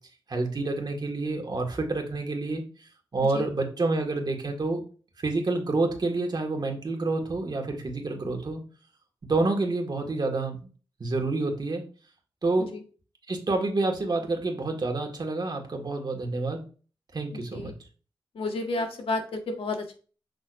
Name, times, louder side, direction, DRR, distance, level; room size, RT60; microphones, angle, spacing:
voice 1, 0.3-2.6 3.1-4.8 5.2-8.6 9.2-10.7 11.0-11.8 12.4-12.7 13.3-16.6 17.1-17.7, right 3 dB, 50° right, 2 dB, 1.9 m, -28 dB
voice 2, 17.3-17.7 18.3-19.9, left 2 dB, 85° left, 3 dB, 1.5 m, -31 dB
6.5 x 6.0 x 2.6 m, 0.37 s
cardioid pair, 75°, 9 cm